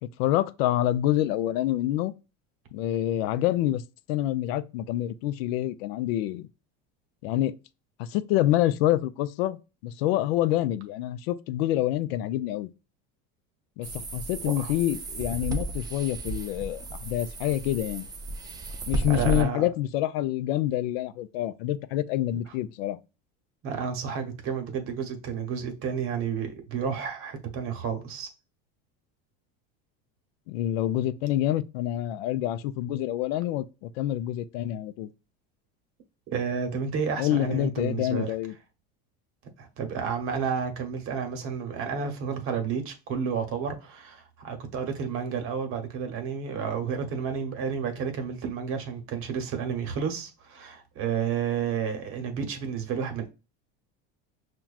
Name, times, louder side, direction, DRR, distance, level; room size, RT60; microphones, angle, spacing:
voice 1, 0.0-2.1 2.7-3.8 4.1-6.5 7.2-7.6 8.0-12.7 13.8-18.1 18.9-23.0 30.5-35.1 37.2-38.5, left 13 dB, 85° left, 0.5 m, -27 dB
sound 1, 13.8-19.4, right 2 dB, 15° right, 0.3 m, -34 dB
voice 2, 19.1-19.6 23.6-28.3 36.3-38.3 39.6-53.3, right 6 dB, 45° right, 1.0 m, -31 dB
5.9 x 2.3 x 2.3 m
supercardioid pair, 140°, 30 cm